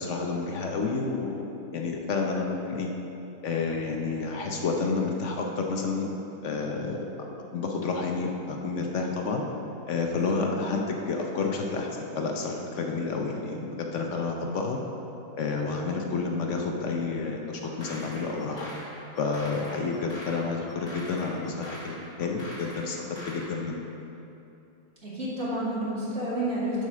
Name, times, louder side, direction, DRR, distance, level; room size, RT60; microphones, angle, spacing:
voice 1, 0.0-1.4 1.7-2.9 3.4-6.1 6.4-7.0 7.5-9.4 9.9-14.8 15.3-18.7 19.2-23.0 23.2-23.8, left 4 dB, 65° left, 1 dB, 0.7 m, -30 dB
sound 1, 17.6-23.5, left 1 dB, 35° left, 1.8 m, -43 dB
voice 2, 25.0-26.9, right 1 dB, 35° right, -9 dB, 2.5 m, -30 dB
7.7 x 5.6 x 6.6 m, 2.9 s
omnidirectional pair, 2.1 m